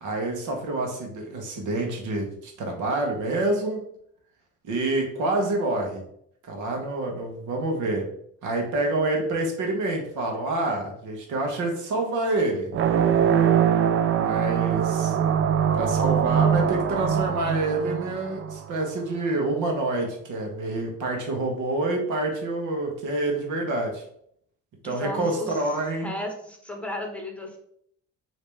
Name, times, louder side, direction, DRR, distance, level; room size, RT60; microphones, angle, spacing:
voice 1, 0.0-3.8 4.6-6.0 6.5-8.1 8.4-12.7 14.1-15.2 15.7-24.0 24.8-26.1, right 2 dB, 80° right, 2 dB, 1.2 m, -27 dB
sound 1, 12.7-18.9, right 8 dB, 45° right, 0.4 m, -22 dB
voice 2, 24.8-25.6 26.0-27.6, left 1 dB, 5° left, 2 dB, 1.0 m, -34 dB
5.1 x 2.8 x 3.4 m, 0.68 s
cardioid pair, 90°, 30 cm